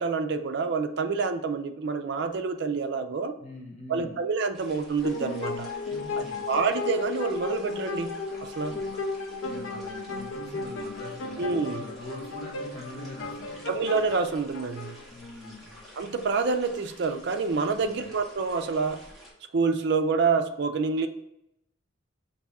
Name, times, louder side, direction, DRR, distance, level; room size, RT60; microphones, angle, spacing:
voice 1, 0.0-3.3 3.9-5.7 6.2-8.1 8.4-8.8 11.4-11.8 13.7-15.0 16.0-19.0 19.5-21.1, right 4 dB, 60° right, 8 dB, 0.4 m, -27 dB
voice 2, 3.4-4.2 5.9-6.5 8.7-9.1 9.4-13.7 15.1-15.8 17.7-18.1, left 1 dB, 30° left, -2 dB, 0.7 m, -43 dB
sound 1, 4.5-19.3, equal, ahead, 1.3 m, -50 dB
sound 2, 5.0-15.5, left 3 dB, 80° left, 0.5 m, -35 dB
5.4 x 2.7 x 3.4 m, 0.84 s
head